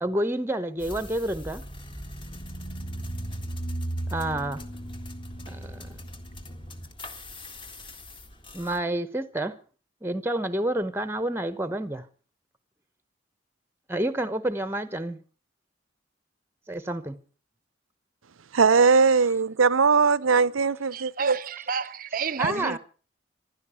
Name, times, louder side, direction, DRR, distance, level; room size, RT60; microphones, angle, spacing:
voice 1, 0.0-1.6 4.1-4.6 5.5-5.9 8.5-9.6 10.0-12.0 13.9-15.2 16.7-17.2 22.4-22.8, right 1 dB, 10° right, 1.0 m, -29 dB
sound 1, 0.8-8.8, right 1 dB, 25° left, 1.8 m, -37 dB
voice 2, 18.5-21.4, right 5 dB, 90° right, 0.7 m, -20 dB
voice 3, 20.9-22.8, right 5 dB, 45° right, 0.7 m, -31 dB
15.5 x 12.0 x 7.0 m
head